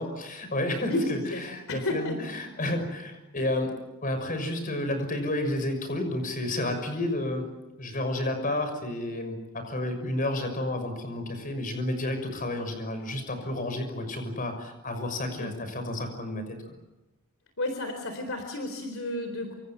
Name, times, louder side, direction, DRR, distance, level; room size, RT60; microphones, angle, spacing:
voice 1, 0.0-3.7 4.0-7.5 7.8-16.6, left 1 dB, 40° left, 8 dB, 6.2 m, -31 dB
voice 2, 0.9-2.2 15.4-15.5 17.6-19.5, left 1 dB, 60° left, 6 dB, 4.0 m, -32 dB
28.0 x 26.5 x 7.6 m, 0.99 s
head